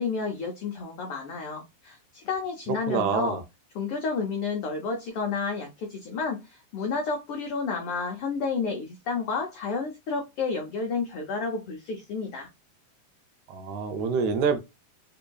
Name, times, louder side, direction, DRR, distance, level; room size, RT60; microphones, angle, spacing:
voice 1, 0.0-3.4 3.7-12.5, left 4 dB, 90° left, 1.2 m, -31 dB
voice 2, 2.9-3.4 13.5-14.6, right 5 dB, 75° right, 1.9 m, -26 dB
4.7 x 2.7 x 2.2 m
omnidirectional pair, 3.5 m